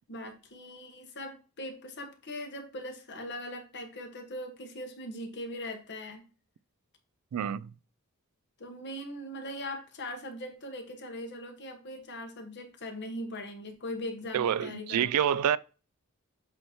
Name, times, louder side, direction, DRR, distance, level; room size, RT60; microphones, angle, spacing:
voice 1, 0.1-6.2 8.6-15.1, left 1 dB, 50° left, 1.3 m, -40 dB
voice 2, 7.3-7.7 14.3-15.6, right 9 dB, 90° right, 0.3 m, -27 dB
7.9 x 2.9 x 4.3 m
head